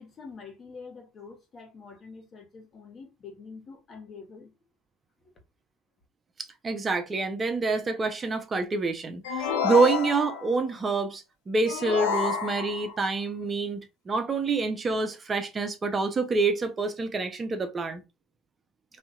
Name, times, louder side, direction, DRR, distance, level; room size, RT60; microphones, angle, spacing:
voice 1, 0.0-4.5 5.2-5.3, left 4 dB, 40° left, 1.3 m, -46 dB
voice 2, 6.6-18.0, right 3 dB, 25° right, 0.6 m, -27 dB
sound 1, 9.2-10.6 11.7-13.0, left 6 dB, 90° left, 0.8 m, -29 dB
4.3 x 2.7 x 2.3 m
supercardioid pair, 95°, 0 cm